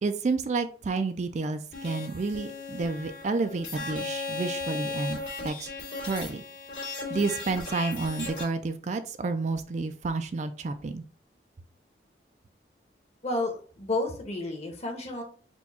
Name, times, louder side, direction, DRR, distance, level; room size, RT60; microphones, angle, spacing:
voice 1, 0.0-5.2 5.4-5.7 6.1-6.4 7.1-11.0, right 3 dB, 40° right, 9 dB, 0.3 m, -30 dB
sound 1, 1.7-8.4, left 3 dB, 80° left, 2.0 m, -36 dB
voice 2, 13.2-15.2, left 2 dB, 40° left, 2 dB, 1.0 m, -31 dB
4.4 x 2.3 x 4.1 m, 0.42 s
head